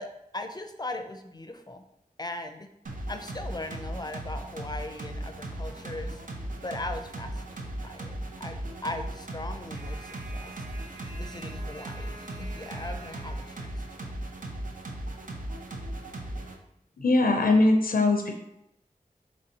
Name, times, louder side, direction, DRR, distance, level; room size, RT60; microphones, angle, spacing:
voice 1, 0.0-1.8 2.2-2.7 3.1-6.2 6.6-10.6 11.1-13.7 14.0-14.1, left 2 dB, 25° left, 7 dB, 0.5 m, -39 dB
sound 1, 2.9-16.6, right 1 dB, 65° right, 0.7 m, -37 dB
voice 2, 17.0-18.3, left 2 dB, 80° left, 3 dB, 0.5 m, -21 dB
5.2 x 3.1 x 2.8 m, 0.82 s
wide cardioid pair, 40°, 15 cm